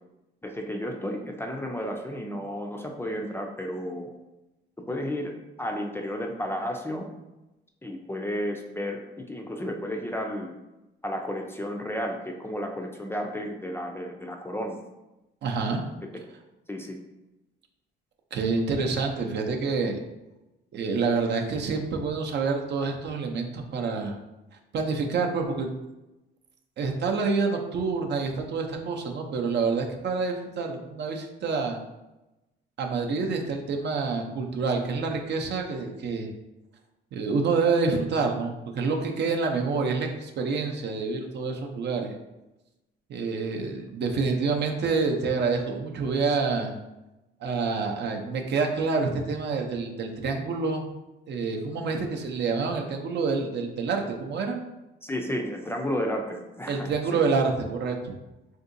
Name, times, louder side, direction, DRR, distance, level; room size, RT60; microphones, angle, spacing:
voice 1, 0.4-4.1 4.9-5.3 5.6-7.1 7.8-10.5 11.0-14.8 16.7-17.0 55.0-57.2, equal, 10° left, 2 dB, 0.4 m, -32 dB
voice 2, 15.4-15.8 18.3-20.0 20.7-24.2 24.7-25.7 26.8-31.8 32.8-36.3 37.1-42.1 43.1-46.7 47.4-50.8 51.3-54.6 56.7-58.2, right 4 dB, 60° right, 2 dB, 0.6 m, -27 dB
3.7 x 2.6 x 2.6 m, 0.99 s
cardioid pair, 90°, 20 cm